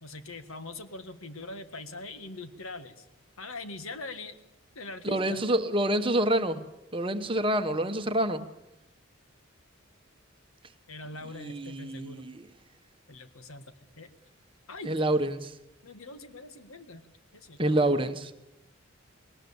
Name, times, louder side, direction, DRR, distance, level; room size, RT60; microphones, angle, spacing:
voice 1, 0.0-3.1 3.4-4.4 4.8-5.4 10.9-12.2 13.1-13.7 14.0-14.1 14.7-15.0 15.8-17.1 17.3-18.0, left 2 dB, 80° left, 1.7 m, -42 dB
voice 2, 5.0-6.6 6.9-8.5 11.4-12.4 14.8-15.6 17.6-18.3, right 1 dB, 25° right, 1.1 m, -27 dB
20.5 x 19.0 x 7.2 m
head